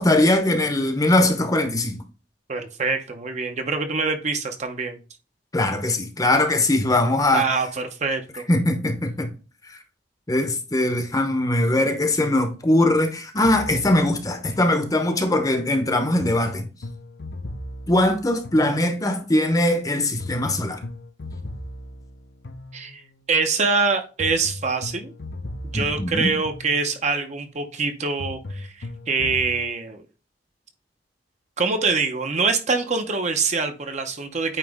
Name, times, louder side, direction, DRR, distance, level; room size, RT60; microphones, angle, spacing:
voice 1, 0.0-2.0 5.5-7.5 8.5-9.3 9.7-9.8 10.3-16.7 17.9-20.8 25.7-26.3, left 1 dB, 20° left, 0.8 m, -21 dB
voice 2, 2.5-5.0 7.3-8.4 22.7-23.0 23.3-25.1 25.6-30.0 31.6-34.6, right 4 dB, 40° right, 0.7 m, -24 dB
sound 1, 13.4-15.3 16.2-19.3 20.2-23.3 24.2-27.2 28.2-29.6, left 2 dB, 65° left, 0.7 m, -37 dB
8.8 x 3.0 x 3.5 m
head